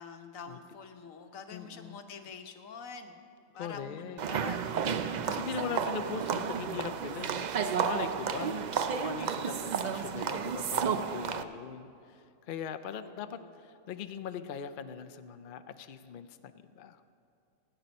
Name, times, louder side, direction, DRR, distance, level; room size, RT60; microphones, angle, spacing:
voice 1, 0.0-3.2 3.6-5.4 13.0-13.5, left 5 dB, 85° left, 6 dB, 1.3 m, -46 dB
voice 2, 1.5-2.1 3.6-4.2 5.2-17.0, left 7 dB, 60° left, 10 dB, 0.5 m, -41 dB
sound 1, 4.2-11.4, right 7 dB, 75° right, 0.4 m, -32 dB
16.5 x 9.2 x 5.3 m, 2.5 s
omnidirectional pair, 1.4 m